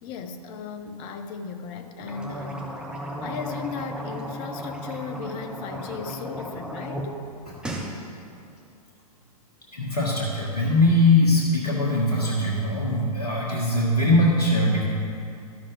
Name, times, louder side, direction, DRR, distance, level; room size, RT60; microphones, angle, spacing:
voice 1, 0.0-2.7 3.2-7.1, left 6 dB, 25° left, 7 dB, 0.5 m, -36 dB
sound 1, 2.0-7.1 7.4-7.9, right 1 dB, 5° right, 0.9 m, -35 dB
voice 2, 7.5-8.0 9.7-14.8, left 1 dB, 75° left, -5 dB, 1.5 m, -21 dB
13.5 x 5.7 x 3.3 m, 2.5 s
figure-of-eight pair, 110°, 20 cm